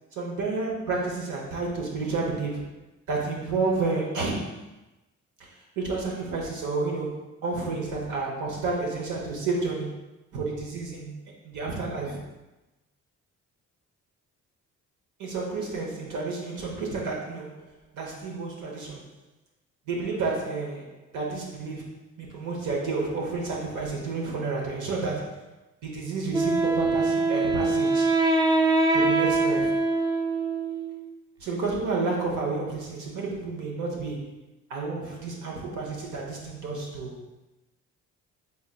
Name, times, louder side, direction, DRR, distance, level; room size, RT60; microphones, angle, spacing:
voice 1, 0.2-2.7 3.1-4.6 5.4-5.5 5.8-9.9 10.3-11.1 11.4-12.2 15.2-17.6 17.9-19.0 19.9-25.5 25.8-28.2 28.9-29.8 31.4-34.4 34.7-37.2, right 3 dB, 80° right, -2 dB, 1.0 m, -30 dB
Wind instrument woodwind instrument, 26.3-31.1, right 3 dB, 15° right, 0.3 m, -23 dB
4.1 x 3.6 x 2.2 m, 1.0 s
cardioid pair, 90°, 30 cm